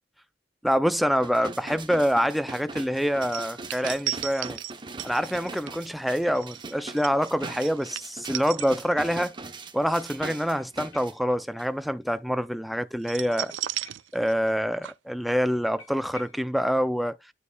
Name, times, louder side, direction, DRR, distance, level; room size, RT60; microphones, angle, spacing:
voice 1, 0.6-4.6 5.0-9.3 9.7-13.5 14.1-17.2, equal, ahead, 0.3 m, -26 dB
sound 1, 1.2-11.1 11.6-11.7, right 3 dB, 25° right, 0.8 m, -40 dB
sound 2, 3.2-9.3 9.6-9.9 13.0-14.6 14.8-14.9, right 15 dB, 75° right, 0.4 m, -35 dB
sound 3, 8.2-9.4 9.7-9.8 10.0-10.1 10.6-12.1 13.5-14.7 14.9-15.0 15.3-15.4 15.8-16.5, left 2 dB, 75° left, 2.1 m, -53 dB
9.7 x 5.0 x 2.3 m
head